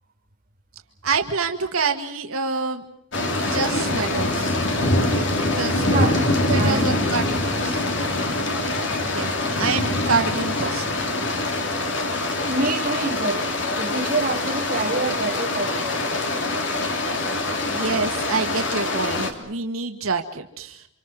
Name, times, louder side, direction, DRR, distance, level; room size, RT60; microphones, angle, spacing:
voice 1, 1.0-2.8 3.5-4.6 5.4-6.1 6.5-7.2 7.5-7.8 9.1-9.3 9.6-11.0 17.6-20.9, right 4 dB, 85° right, 1.8 m, -26 dB
sound 1, 3.1-19.3, left 2 dB, 60° left, 3.0 m, -24 dB
voice 2, 5.8-7.1 11.9-12.0 12.3-16.1, right 3 dB, 40° right, 3.0 m, -27 dB
29.0 x 26.0 x 6.1 m
head